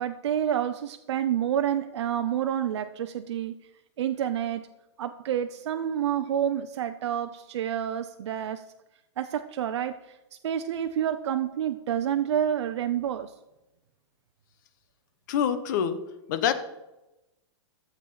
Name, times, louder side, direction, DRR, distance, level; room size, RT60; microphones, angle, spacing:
voice 1, 0.0-3.5 4.0-4.6 5.0-8.6 9.2-10.0 10.4-13.3, right 10 dB, 80° right, 7 dB, 0.7 m, -28 dB
voice 2, 15.3-16.0 16.3-16.5, left 8 dB, 40° left, 11 dB, 1.0 m, -25 dB
13.0 x 7.3 x 5.6 m, 0.98 s
supercardioid pair, 175°, 15 cm